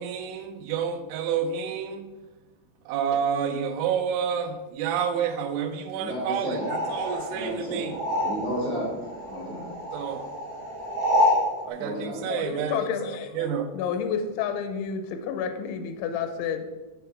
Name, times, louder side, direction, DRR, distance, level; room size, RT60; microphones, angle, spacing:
voice 1, 0.0-2.1 2.9-8.0 9.9-10.3 11.6-13.7, right 7 dB, 85° right, 8 dB, 3.0 m, -29 dB
voice 2, 5.9-6.7 7.3-7.9 8.2-8.9 9.3-9.6 11.8-12.5, equal, 30° right, -6 dB, 0.7 m, -32 dB
sound 1, 6.5-8.8 9.0-11.5, left 1 dB, 60° right, 2.2 m, -27 dB
voice 3, 12.2-13.5 13.7-16.6, left 7 dB, 85° left, 7 dB, 3.0 m, -30 dB
6.9 x 3.6 x 5.7 m, 1.2 s
omnidirectional pair, 5.4 m